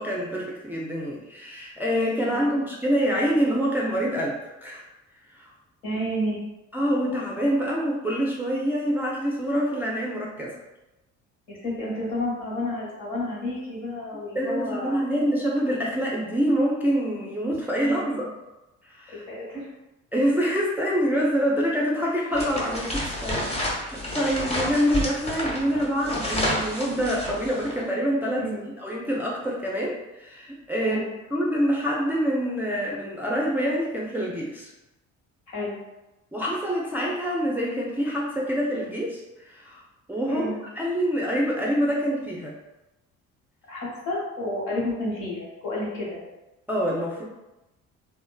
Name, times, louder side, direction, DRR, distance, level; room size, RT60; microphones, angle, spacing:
voice 1, 0.0-4.8 5.3-5.5 6.7-10.6 14.4-18.3 18.8-19.2 20.1-28.5 28.8-31.0 31.3-34.7 36.3-39.8 40.1-40.5 40.8-42.6 46.7-47.2, equal, 5° right, -4 dB, 0.3 m, -26 dB
voice 2, 2.3-2.6 5.8-6.4 11.5-15.0 17.7-18.3 19.1-19.7 24.3-24.4 28.4-28.7 30.8-31.1 35.5-35.8 40.3-40.6 43.7-46.2, left 1 dB, 70° left, -6 dB, 1.2 m, -31 dB
sound 1, 22.3-27.8, left 1 dB, 15° left, 0.8 m, -30 dB
3.1 x 2.1 x 2.2 m, 0.99 s
figure-of-eight pair, 50°, 39 cm